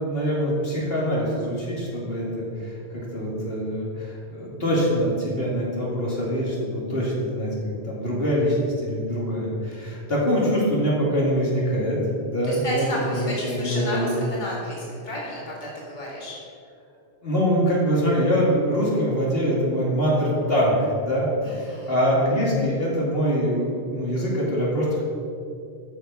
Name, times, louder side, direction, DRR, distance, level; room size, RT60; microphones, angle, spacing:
voice 1, 0.0-12.0 12.2-12.9 13.1-14.2 17.2-25.0, equal, 60° left, -5 dB, 2.6 m, -24 dB
voice 2, 12.4-16.4 21.4-22.0, left 1 dB, 40° left, -5 dB, 2.3 m, -32 dB
12.5 x 7.3 x 5.4 m, 2.4 s
omnidirectional pair, 1.1 m